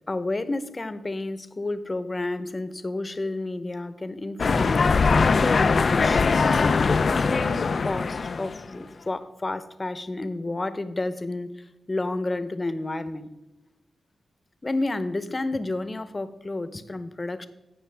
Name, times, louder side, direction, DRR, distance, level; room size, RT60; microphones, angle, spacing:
voice 1, 0.1-11.5 11.9-13.3 14.6-17.5, left 2 dB, 35° left, 12 dB, 0.9 m, -31 dB
sound 1, 4.4-8.6, left 4 dB, 60° left, 0.4 m, -21 dB
15.5 x 5.5 x 3.5 m, 1.1 s
supercardioid pair, 45°, 0 cm